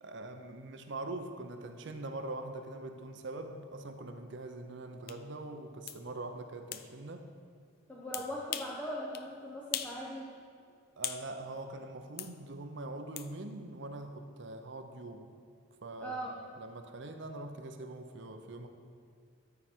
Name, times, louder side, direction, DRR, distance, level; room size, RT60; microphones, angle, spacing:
voice 1, 0.0-7.2 11.0-15.3 15.8-16.2 16.6-18.7, right 2 dB, 55° right, 7 dB, 0.6 m, -43 dB
sound 1, 5.1-5.2 5.9-6.0 6.7-6.9 8.1-8.8 9.1-9.3 9.7-10.0 10.3-11.3 12.2-12.3 13.2-13.3, left 10 dB, 45° left, 0.3 m, -39 dB
voice 2, 7.9-10.3 16.0-16.4, equal, 10° left, -5 dB, 0.7 m, -40 dB
13.0 x 4.7 x 4.4 m, 2.2 s
head